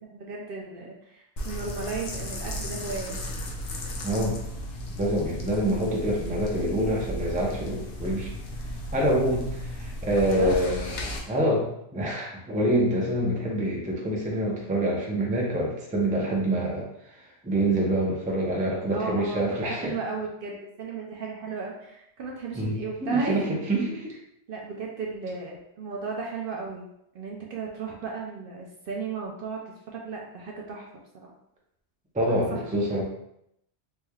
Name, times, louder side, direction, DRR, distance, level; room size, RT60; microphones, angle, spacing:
voice 1, 0.0-3.2 10.1-10.5 18.9-23.4 24.5-26.9 27.1-29.6 29.9-30.9 31.2-31.3 32.3-33.0, right 4 dB, 60° right, -2 dB, 0.6 m, -35 dB
sound 1, 1.4-11.2, equal, 80° left, 1.0 m, -35 dB
voice 2, 4.0-4.4 5.0-8.3 8.9-10.9 11.3-11.7 11.9-16.9 17.1-19.9 22.5-24.1 32.1-33.0, right 1 dB, 10° right, -3 dB, 0.4 m, -26 dB
3.4 x 3.1 x 2.2 m, 0.78 s
omnidirectional pair, 1.2 m